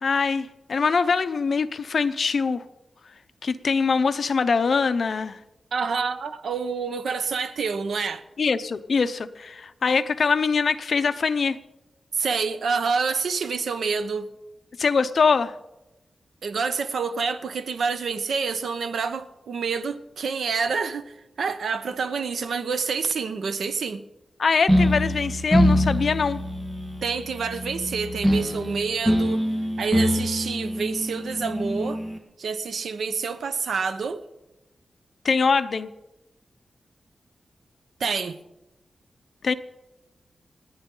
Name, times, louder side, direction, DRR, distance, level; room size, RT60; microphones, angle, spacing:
voice 1, 0.0-2.6 3.4-5.4 8.4-11.6 14.8-15.5 24.4-26.4 35.2-35.9 39.4-39.5, left 5 dB, 55° left, 0.7 m, -23 dB
voice 2, 5.7-8.2 12.1-14.3 16.4-24.0 27.0-29.4 29.8-32.0 32.4-34.2 38.0-38.4, right 5 dB, 85° right, 0.9 m, -27 dB
sound 1, 24.7-32.2, equal, 20° right, 1.7 m, -24 dB
28.5 x 9.7 x 3.9 m
wide cardioid pair, 145°, 0 cm